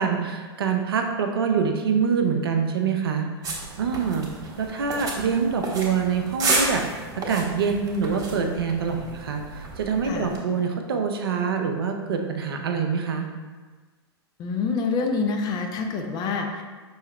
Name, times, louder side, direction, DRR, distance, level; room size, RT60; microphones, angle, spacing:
voice 1, 0.0-4.3 4.6-6.8 7.2-13.3, right 6 dB, 60° right, 4 dB, 0.6 m, -25 dB
sound 1, 3.4-10.4, right 3 dB, 25° right, 0.9 m, -31 dB
voice 2, 14.4-16.6, left 4 dB, 30° left, 3 dB, 0.5 m, -26 dB
5.6 x 3.1 x 3.0 m, 1.4 s
figure-of-eight pair, 95°, 14 cm